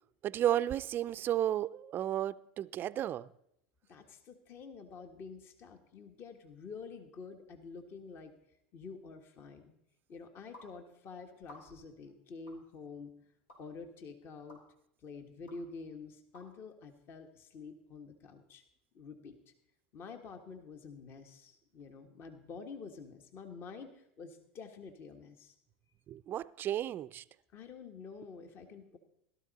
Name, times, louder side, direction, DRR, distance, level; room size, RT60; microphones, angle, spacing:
voice 1, 0.2-3.3 26.1-27.2, right 12 dB, 40° right, 0.4 m, -33 dB
voice 2, 3.9-8.3 8.7-9.8 10.1-13.1 13.6-14.6 15.0-18.6 18.9-19.5 19.9-25.5 27.5-29.0, left 4 dB, 45° left, 1.4 m, -48 dB
sound 1, 10.5-10.7 11.4-11.9 12.5-12.6 13.5-13.6 14.5-14.6 15.5-15.6 16.3-16.5, left 1 dB, 90° left, 4.8 m, -54 dB
16.5 x 12.5 x 4.1 m
hypercardioid pair, 90°, 6 cm